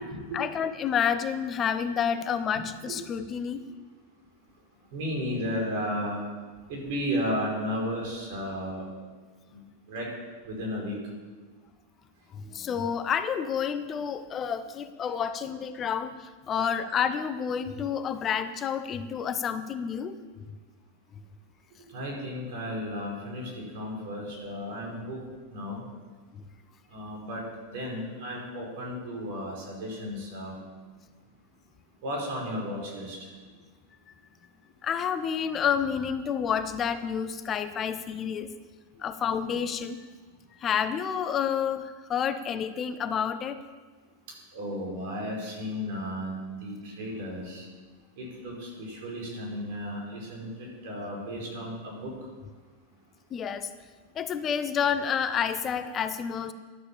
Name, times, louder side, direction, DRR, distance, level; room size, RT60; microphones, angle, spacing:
voice 1, 0.3-3.6 12.3-20.2 26.3-26.4 34.8-38.5 39.0-40.1 40.6-43.6 53.3-53.7 54.1-56.5, left 7 dB, 30° left, 12 dB, 0.8 m, -29 dB
voice 2, 4.9-6.2 6.7-8.8 9.5-9.6 9.9-10.1 10.5-11.0 16.5-16.6 21.9-25.2 25.5-25.8 26.9-30.6 32.0-33.2 44.5-47.6 48.2-52.1, equal, 50° right, -1 dB, 5.2 m, -34 dB
12.0 x 9.8 x 7.1 m, 1.4 s
figure-of-eight pair, 90°, 0 cm